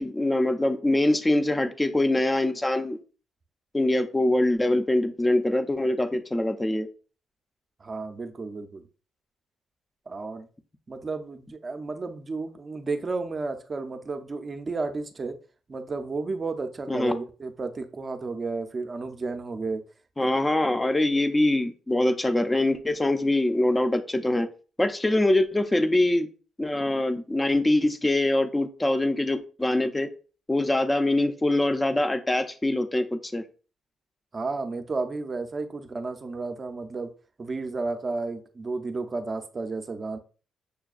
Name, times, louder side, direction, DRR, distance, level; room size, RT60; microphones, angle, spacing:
voice 1, 0.0-3.0 3.7-6.9 16.9-17.1 20.2-24.5 24.8-26.3 26.6-30.1 30.5-33.4, left 1 dB, 15° left, 9 dB, 0.5 m, -24 dB
voice 2, 7.8-8.8 10.1-10.5 10.9-15.4 15.7-19.8 20.2-20.5 34.3-37.1 37.4-40.2, right 3 dB, 35° right, 8 dB, 0.5 m, -32 dB
6.7 x 2.2 x 2.4 m, 0.37 s
cardioid pair, 90°, 0 cm